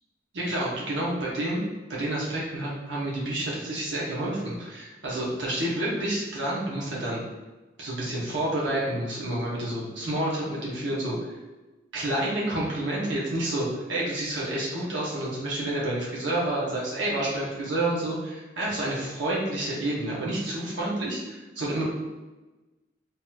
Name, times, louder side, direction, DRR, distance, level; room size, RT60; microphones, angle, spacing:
voice 1, 0.3-1.6 1.9-7.2 7.8-11.3 11.9-21.8, right 1 dB, 75° right, -5 dB, 0.8 m, -29 dB
3.5 x 2.8 x 2.3 m, 1.1 s
head